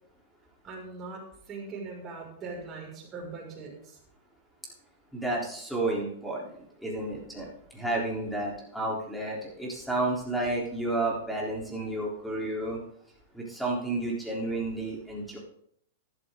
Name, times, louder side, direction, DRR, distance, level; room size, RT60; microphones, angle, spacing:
voice 1, 0.6-4.0, right 4 dB, 20° right, -3 dB, 6.1 m, -41 dB
voice 2, 5.1-6.6 6.8-12.8 13.3-15.4, right 2 dB, ahead, -4 dB, 3.8 m, -31 dB
13.5 x 12.5 x 3.9 m, 0.68 s
hypercardioid pair, 135°, 0 cm